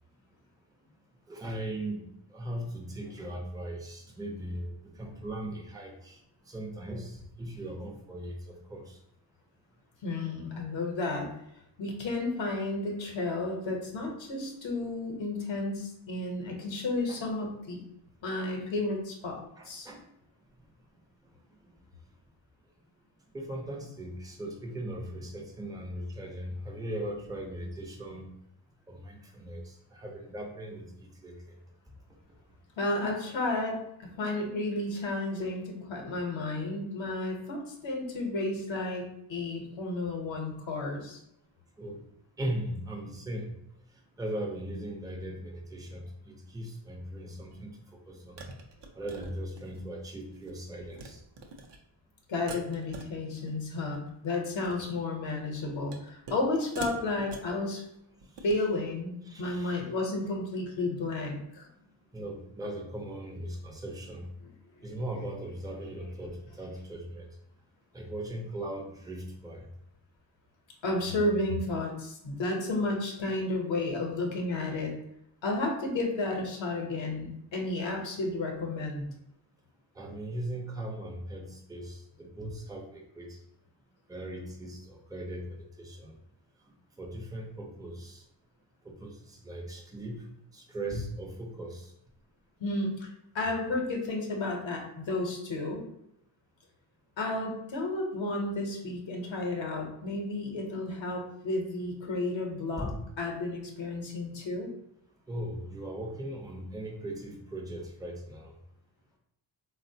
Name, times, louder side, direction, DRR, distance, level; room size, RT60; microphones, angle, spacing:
voice 1, 1.3-9.0 17.1-17.2 19.5-20.0 23.3-28.3 28.9-31.6 41.8-42.0 42.4-43.6 44.2-47.8 48.1-48.4 48.9-51.2 58.4-58.5 59.2-59.8 62.1-64.3 64.8-67.3 67.9-69.7 80.0-83.4 84.1-86.1 87.0-88.2 88.8-91.9 102.8-103.0 105.3-108.5, right 1 dB, 10° right, 0 dB, 0.5 m, -39 dB
voice 2, 10.0-11.3 11.8-17.8 18.2-19.4 19.6-19.9 32.8-41.2 52.3-57.8 58.4-61.7 64.8-64.9 70.8-74.9 75.4-79.1 92.6-95.8 97.2-102.9 103.2-104.7, left 2 dB, 65° left, 1 dB, 0.7 m, -32 dB
sound 1, 47.5-47.6 48.4-49.9 50.2-50.5 50.8-51.1 51.4-51.8 52.5-53.5 53.8-54.1 54.5-55.0 55.9-56.5 56.8-57.6 58.2-58.6, right 3 dB, 60° right, 0.5 m, -44 dB
3.6 x 2.1 x 2.6 m, 0.80 s
wide cardioid pair, 110°, 49 cm